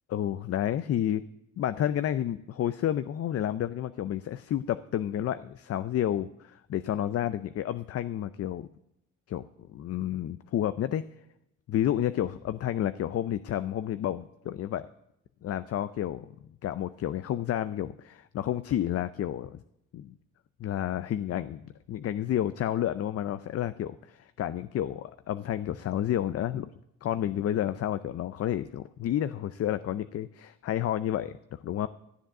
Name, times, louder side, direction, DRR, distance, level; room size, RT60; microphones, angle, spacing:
voice 1, 0.1-1.2 1.6-8.7 9.3-9.4 9.7-11.0 11.7-14.9 15.4-16.3 16.6-19.6 19.9-20.1 20.6-26.7 27.0-31.9, left 11 dB, 50° left, 13 dB, 0.5 m, -30 dB
13.0 x 7.6 x 6.5 m, 0.81 s
cardioid pair, 90°, 30 cm